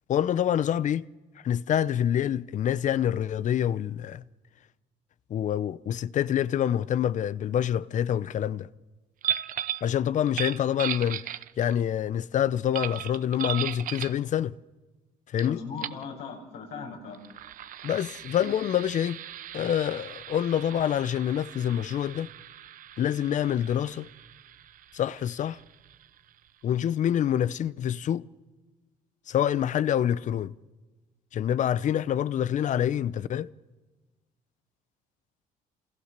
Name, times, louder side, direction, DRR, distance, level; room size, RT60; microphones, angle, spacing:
voice 1, 0.1-1.1 1.4-4.2 5.3-8.7 9.8-11.3 11.6-14.5 15.3-15.6 17.8-19.2 19.5-22.3 23.0-24.1 24.9-25.6 26.6-28.3 29.3-30.5 31.3-33.5, left 10 dB, 50° left, 0.8 m, -26 dB
sound 1, 9.2-9.9 10.3-11.8 12.7-14.2 15.4-15.5 15.8-16.0 17.1-26.4, right 11 dB, 55° right, 0.9 m, -37 dB
voice 2, 15.5-17.2, left 5 dB, 75° left, 6.5 m, -38 dB
29.0 x 27.5 x 6.8 m
supercardioid pair, 90°, 16 cm